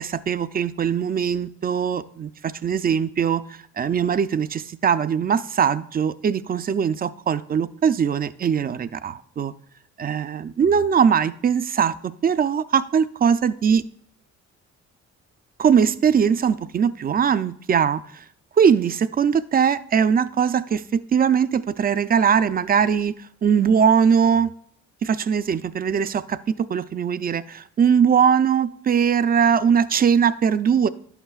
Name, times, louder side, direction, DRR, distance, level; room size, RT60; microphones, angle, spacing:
voice 1, 0.0-3.4 3.8-9.5 10.0-13.8 15.6-18.2 18.6-23.1 23.4-24.5 25.0-30.9, right 7 dB, 30° right, 14 dB, 0.4 m, -21 dB
11.0 x 7.9 x 2.4 m, 0.64 s
cardioid pair, 90°, 30 cm